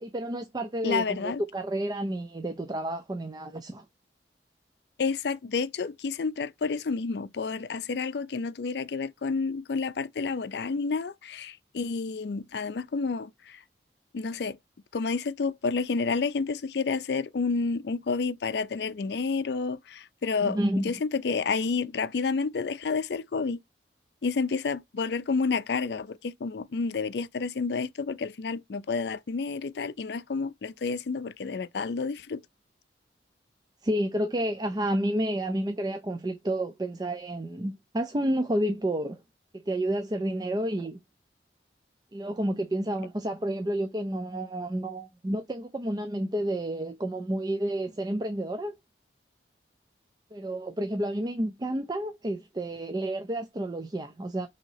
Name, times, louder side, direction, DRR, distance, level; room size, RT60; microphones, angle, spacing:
voice 1, 0.0-3.8 20.4-21.0 33.8-39.2 39.5-41.0 42.1-48.8 50.3-54.5, right 1 dB, 25° right, 0.4 m, -30 dB
voice 2, 0.8-1.4 5.0-13.6 14.1-14.6 14.9-23.6 24.2-32.4, left 4 dB, 70° left, 0.4 m, -30 dB
5.9 x 2.8 x 2.7 m
head